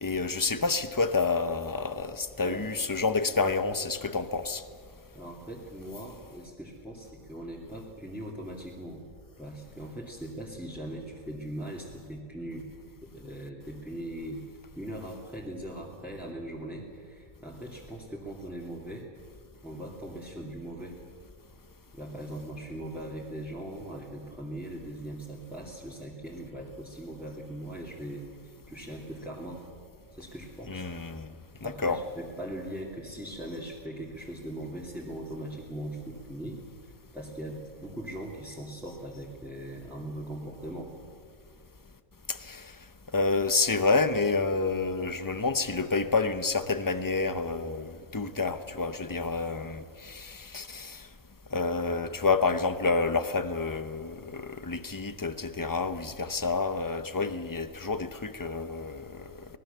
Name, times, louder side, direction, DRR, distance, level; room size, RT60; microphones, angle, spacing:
voice 1, 0.0-4.6 30.6-31.3 31.6-32.0 42.3-42.7 43.1-51.1 51.5-59.3, left 4 dB, 20° left, 11 dB, 0.5 m, -29 dB
voice 2, 5.1-9.0 9.4-12.7 13.0-14.4 14.8-19.1 19.6-21.0 21.9-28.3 28.7-29.6 30.2-30.9 31.6-40.9, right 1 dB, ahead, -5 dB, 2.5 m, -40 dB
24.5 x 19.5 x 6.9 m, 2.3 s
omnidirectional pair, 1.5 m